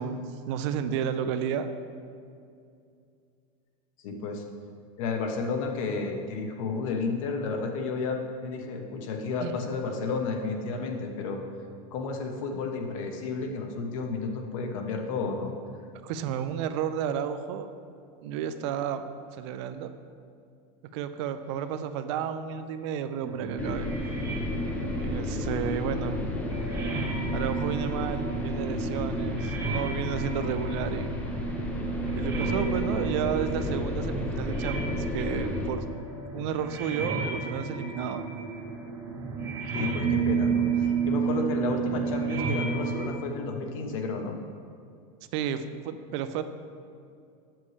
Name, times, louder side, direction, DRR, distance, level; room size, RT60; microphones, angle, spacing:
voice 1, 0.0-1.7 9.4-9.5 16.0-17.7 18.2-19.0 19.3-19.9 20.9-23.9 25.0-26.3 27.3-31.1 32.2-35.9 36.3-38.3 45.3-46.4, right 8 dB, 55° right, 10 dB, 0.5 m, -32 dB
voice 2, 4.0-4.4 5.0-11.4 11.9-15.5 39.7-44.4, left 4 dB, 65° left, 3 dB, 1.0 m, -32 dB
sound 1, 23.2-43.1, right 6 dB, 20° right, 1.0 m, -32 dB
sound 2, 23.6-35.7, left 2 dB, 10° left, 0.5 m, -32 dB
8.4 x 7.5 x 3.2 m, 2.4 s
supercardioid pair, 170°, 18 cm